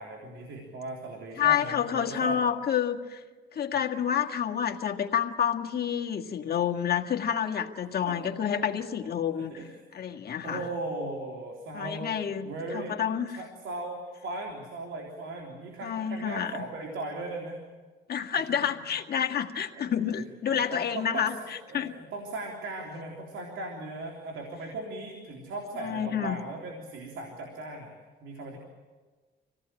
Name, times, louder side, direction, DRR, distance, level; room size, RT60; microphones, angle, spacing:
voice 1, 0.0-2.4 8.1-8.5 9.5-9.8 10.4-12.2 12.4-13.0 13.3-17.6 18.3-18.4 19.7-27.9 28.2-28.6, right 2 dB, 80° right, 1 dB, 3.4 m, -38 dB
voice 2, 1.4-3.2 3.5-9.5 9.9-10.6 11.7-12.5 12.7-13.4 15.8-16.5 18.1-21.3 21.7-21.9 25.8-26.4, left 8 dB, 50° left, 2 dB, 1.8 m, -29 dB
25.5 x 17.5 x 8.9 m, 1.4 s
cardioid pair, 90°, 20 cm